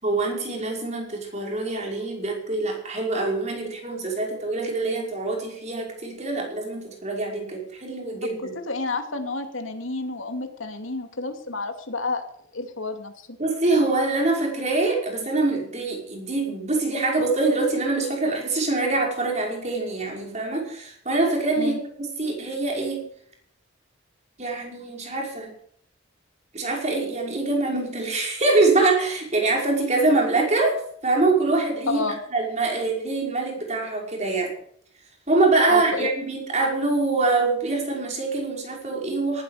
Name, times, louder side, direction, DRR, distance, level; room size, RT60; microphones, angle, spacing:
voice 1, 0.0-8.5 13.4-23.1 24.4-25.5 26.5-32.0 32.3-34.5 35.3-39.4, right 3 dB, 35° right, 0 dB, 5.5 m, -24 dB
voice 2, 8.7-12.2 12.5-13.3 21.6-21.8 31.9-32.2 35.7-36.1, left 3 dB, 85° left, 5 dB, 2.6 m, -30 dB
18.5 x 14.0 x 5.1 m, 0.65 s
head